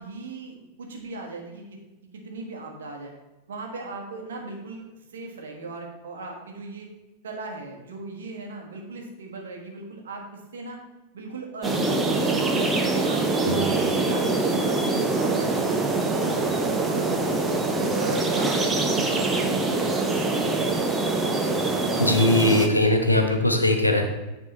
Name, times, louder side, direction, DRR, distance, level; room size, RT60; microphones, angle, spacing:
voice 1, 0.0-1.7 2.1-3.1 3.5-4.8 5.1-6.9 7.2-10.8 11.1-12.4 12.8-17.4 17.9-20.9, right 3 dB, 65° right, 1 dB, 1.4 m, -38 dB
sound 1, 11.6-22.7, right 3 dB, 15° right, 0.8 m, -24 dB
voice 2, 22.0-24.0, left 1 dB, 85° left, 4 dB, 0.8 m, -20 dB
9.3 x 3.5 x 4.2 m, 1.1 s
figure-of-eight pair, 90°, 0 cm